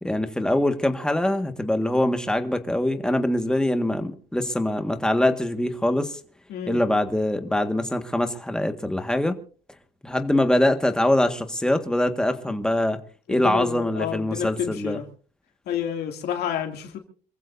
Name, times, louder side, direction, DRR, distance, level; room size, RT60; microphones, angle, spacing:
voice 1, 0.0-6.2 6.7-9.4 10.0-13.0 13.3-15.0, left 1 dB, 5° left, 1.7 m, -23 dB
voice 2, 13.3-15.0 15.7-17.0, left 9 dB, 70° left, 2.6 m, -29 dB
27.0 x 15.5 x 2.7 m
cardioid pair, 110°, 17 cm